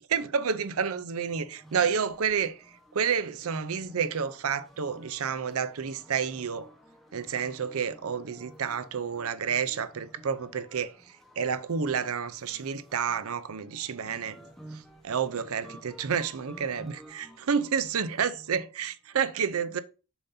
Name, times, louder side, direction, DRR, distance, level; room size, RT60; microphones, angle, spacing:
voice 1, 0.1-2.6 2.9-6.7 7.1-10.9 11.4-14.4 14.7-19.8, right 6 dB, 70° right, 0.6 m, -30 dB
sound 1, 1.1-19.0, right 1 dB, ahead, 0.9 m, -53 dB
6.9 x 2.7 x 5.6 m
head